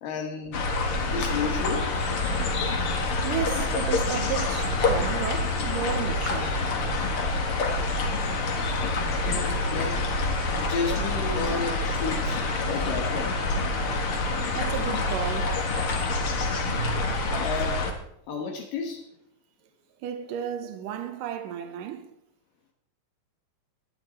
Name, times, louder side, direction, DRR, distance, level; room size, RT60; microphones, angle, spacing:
voice 1, 0.0-0.6 1.0-1.9 3.6-3.7 9.2-10.0 10.6-13.3 17.4-17.9 18.3-19.0, left 5 dB, 75° left, 3.1 m, -32 dB
sound 1, 0.5-17.9, left 2 dB, 45° left, 2.2 m, -27 dB
voice 2, 2.6-6.7 12.6-12.7 14.5-15.6 20.0-22.1, right 9 dB, 75° right, 2.7 m, -34 dB
17.0 x 12.0 x 4.4 m
omnidirectional pair, 3.9 m